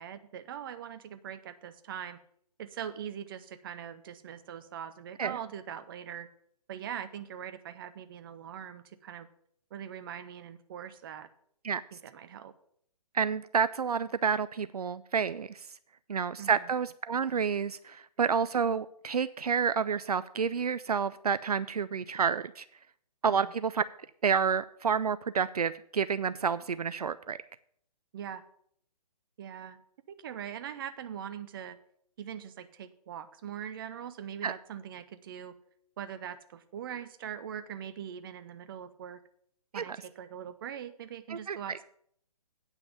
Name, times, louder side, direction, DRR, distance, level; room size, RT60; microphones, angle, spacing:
voice 1, 0.0-2.2 2.6-6.3 6.7-9.3 9.7-11.3 11.9-12.5 16.4-16.7 23.3-23.5 28.1-28.4 29.4-29.8 30.1-31.8 32.2-35.5 36.0-39.2 39.7-41.8, right 9 dB, 35° right, 11 dB, 0.7 m, -42 dB
voice 2, 13.1-15.6 16.1-22.7 23.2-23.8 24.2-27.4 34.4-34.5 39.7-39.8 41.3-41.6, right 6 dB, 75° right, 15 dB, 0.4 m, -29 dB
8.9 x 5.8 x 6.9 m, 0.65 s
figure-of-eight pair, 135°, 20 cm